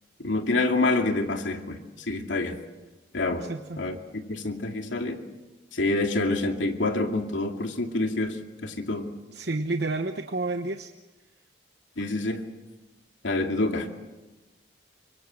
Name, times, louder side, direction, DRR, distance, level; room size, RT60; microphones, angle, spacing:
voice 1, 0.2-2.6 3.1-3.5 3.8-4.0 4.3-5.2 5.7-9.1 12.0-12.4 13.2-13.9, left 2 dB, 85° left, 3 dB, 2.5 m, -27 dB
voice 2, 3.5-3.8 9.3-10.9, right 2 dB, 60° right, 7 dB, 1.0 m, -30 dB
25.0 x 24.0 x 7.7 m, 1.1 s
head